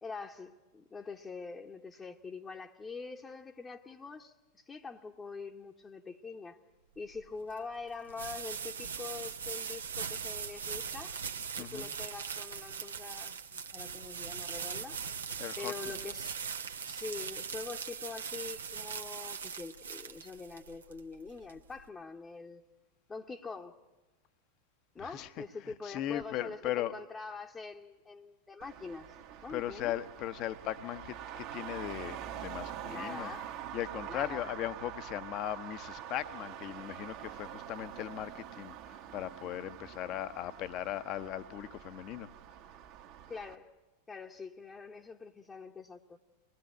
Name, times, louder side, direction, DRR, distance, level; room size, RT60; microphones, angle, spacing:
voice 1, 0.0-6.6 7.0-11.2 11.6-15.0 15.6-16.4 16.9-22.6 23.1-23.8 24.9-29.1 29.4-29.9 32.9-33.5 34.1-34.5 43.3-43.7 44.1-46.2, left 4 dB, 15° left, 0 dB, 1.1 m, -44 dB
sound 1, 7.0-21.9, right 6 dB, 70° right, 1.1 m, -40 dB
voice 2, 11.6-11.9 15.4-15.7 25.0-27.0 29.5-42.3, left 12 dB, 40° left, 12 dB, 1.0 m, -38 dB
Traffic noise roadway noise, 28.6-43.6, right 10 dB, 40° right, 1.4 m, -45 dB
23.0 x 20.5 x 8.2 m, 1.1 s
figure-of-eight pair, 90°, 0 cm